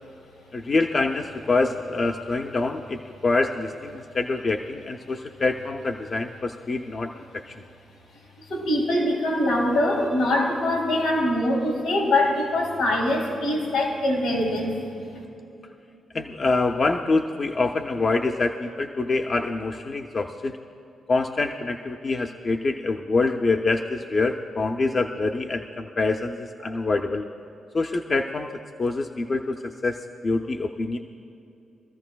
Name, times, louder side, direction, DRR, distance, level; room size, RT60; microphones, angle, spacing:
voice 1, 0.5-7.6 16.1-20.6 21.1-27.3 27.7-31.0, left 3 dB, 50° left, 4 dB, 0.6 m, -25 dB
voice 2, 8.5-15.1, left 1 dB, 85° left, -2 dB, 3.0 m, -23 dB
23.5 x 13.5 x 2.3 m, 2.7 s
supercardioid pair, 50°, 0 cm